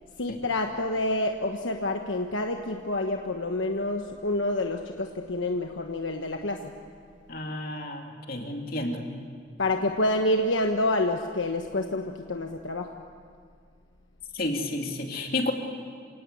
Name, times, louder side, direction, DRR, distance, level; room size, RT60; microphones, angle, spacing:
voice 1, 0.2-6.7 9.6-12.9, left 1 dB, 80° left, 4 dB, 1.2 m, -28 dB
voice 2, 7.3-9.0 14.3-15.5, left 2 dB, 55° left, 2 dB, 2.8 m, -31 dB
27.5 x 18.0 x 8.3 m, 2.1 s
head